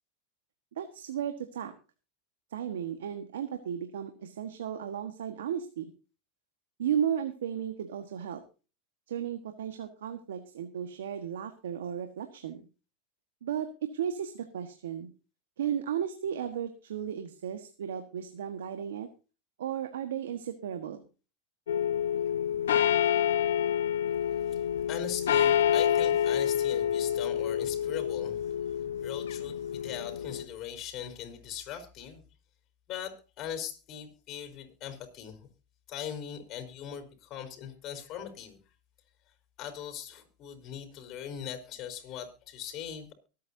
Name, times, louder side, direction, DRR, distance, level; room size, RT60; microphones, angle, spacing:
voice 1, 0.8-1.7 2.5-5.9 6.8-8.4 9.1-12.6 13.4-15.1 15.6-19.1 19.6-21.0, right 9 dB, 85° right, 7 dB, 1.5 m, -34 dB
sound 1, 21.7-30.4, left 9 dB, 85° left, 1.1 m, -28 dB
voice 2, 24.9-28.4 29.0-32.2 32.9-35.4 35.9-38.6 39.6-43.1, left 9 dB, 45° left, 6 dB, 4.3 m, -40 dB
24.0 x 8.6 x 2.8 m, 0.33 s
hypercardioid pair, 105°, 0 cm